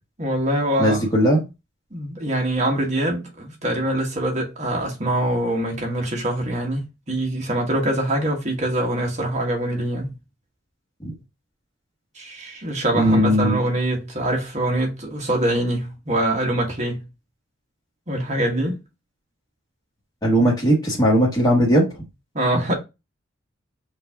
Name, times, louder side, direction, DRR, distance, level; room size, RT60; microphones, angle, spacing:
voice 1, 0.2-1.0 1.9-10.1 12.1-17.0 18.1-18.8 22.3-22.7, right 1 dB, 35° right, 1.4 m, -24 dB
voice 2, 0.8-1.4 11.0-11.1 12.9-13.6 20.2-21.9, equal, 20° left, 1.3 m, -18 dB
5.6 x 2.7 x 3.5 m
head